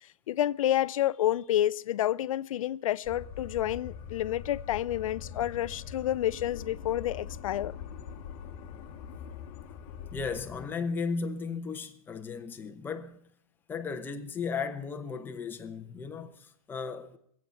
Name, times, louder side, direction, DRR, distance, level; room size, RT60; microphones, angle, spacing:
voice 1, 0.3-7.7, left 12 dB, 70° left, 0.5 m, -29 dB
sound 1, 3.0-10.6, left 8 dB, 30° left, 1.3 m, -43 dB
voice 2, 10.1-13.2 13.7-17.2, left 5 dB, 10° left, 0.9 m, -35 dB
21.0 x 8.5 x 5.7 m
hypercardioid pair, 145°, 18 cm